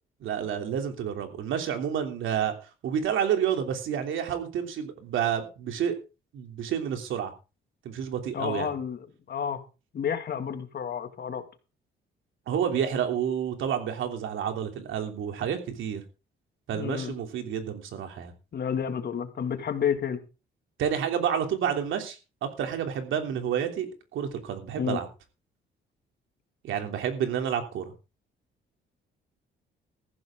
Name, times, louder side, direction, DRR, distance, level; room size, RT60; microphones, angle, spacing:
voice 1, 0.2-2.5 2.8-6.0 6.3-7.3 7.8-8.7 12.5-16.0 16.7-18.3 20.8-25.1 26.6-27.9, right 8 dB, 80° right, 5 dB, 3.1 m, -29 dB
voice 2, 8.3-9.6 9.9-11.4 16.7-17.1 18.5-20.2 24.8-25.0, left 8 dB, 55° left, 8 dB, 2.3 m, -30 dB
14.5 x 12.0 x 3.8 m, 0.32 s
cardioid pair, 90°, 20 cm